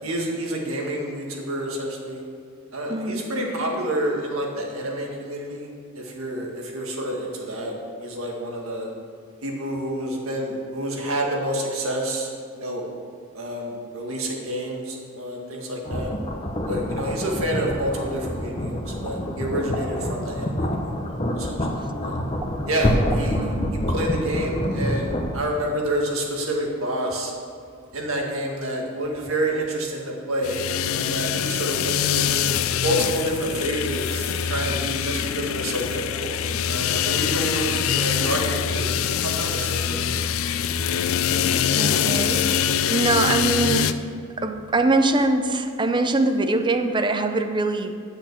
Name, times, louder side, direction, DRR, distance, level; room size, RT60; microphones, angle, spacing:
voice 1, 0.0-2.2 2.7-8.9 9.4-12.3 12.6-12.9 13.3-16.1 16.7-20.9 21.3-22.2 22.7-23.4 23.7-27.3 27.9-32.3 32.8-40.1, right 1 dB, 85° right, -1 dB, 1.9 m, -28 dB
voice 2, 2.9-3.2 23.3-23.7 41.7-43.9 44.4-47.9, right 2 dB, 25° right, 7 dB, 0.6 m, -23 dB
sound 1, 15.8-25.3, equal, 30° left, 0.8 m, -27 dB
sound 2, 30.4-43.9, left 8 dB, 75° left, 0.4 m, -24 dB
10.5 x 6.5 x 6.0 m, 2.4 s
head